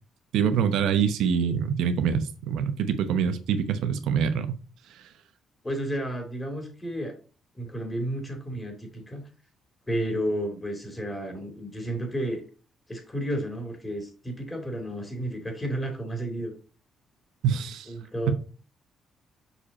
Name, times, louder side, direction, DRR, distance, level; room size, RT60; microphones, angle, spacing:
voice 1, 0.3-4.6 17.4-17.9, right 7 dB, 85° right, 0.8 m, -25 dB
voice 2, 5.6-7.1 7.5-9.2 9.9-12.4 12.9-16.5 17.9-18.3, right 1 dB, 15° left, 2.8 m, -32 dB
6.8 x 5.0 x 4.1 m
cardioid pair, 90°, 0 cm